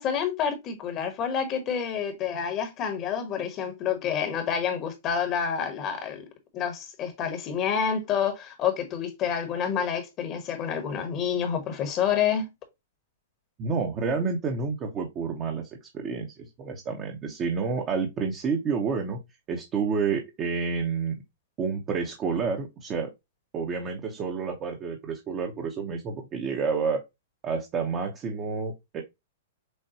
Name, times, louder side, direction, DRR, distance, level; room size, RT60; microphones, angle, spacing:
voice 1, 0.0-6.2 6.5-12.4, left 7 dB, 35° left, 1.2 m, -28 dB
voice 2, 13.6-15.7 15.9-19.2 19.5-21.2 21.6-23.1 23.5-27.0 27.4-29.0, right 5 dB, 30° right, 0.9 m, -29 dB
6.4 x 2.2 x 2.8 m
hypercardioid pair, 125°, 0 cm